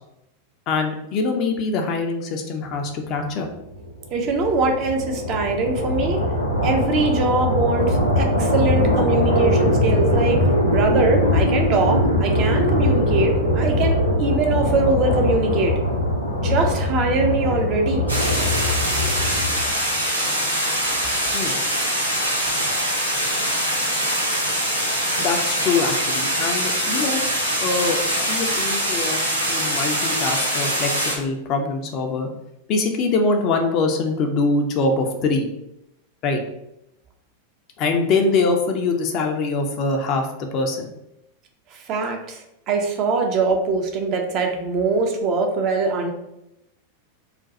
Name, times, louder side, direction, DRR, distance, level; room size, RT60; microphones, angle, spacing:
voice 1, 0.7-3.5 21.3-21.6 25.2-27.2 27.6-32.3 32.7-35.5 36.2-36.4 37.8-40.9, left 3 dB, 40° left, 3 dB, 0.5 m, -23 dB
sound 1, 3.5-19.8, left 1 dB, 85° left, 0.6 m, -21 dB
voice 2, 4.1-6.2 6.6-15.8 16.3-18.1 41.7-46.1, right 3 dB, 35° right, 3 dB, 0.5 m, -22 dB
sound 2, 18.1-31.2, equal, 90° right, 1.0 m, -23 dB
2.4 x 2.2 x 4.0 m, 0.85 s
figure-of-eight pair, 90°, 0 cm